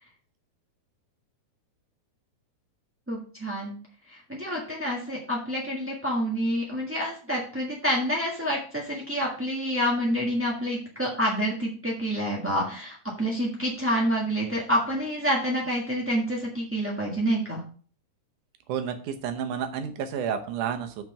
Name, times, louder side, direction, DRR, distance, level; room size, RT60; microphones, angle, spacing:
voice 1, 3.1-3.8 4.1-17.6, equal, 15° right, -3 dB, 0.4 m, -28 dB
voice 2, 18.7-21.0, right 8 dB, 75° right, 7 dB, 2.4 m, -30 dB
6.1 x 6.0 x 5.8 m, 0.43 s
omnidirectional pair, 3.6 m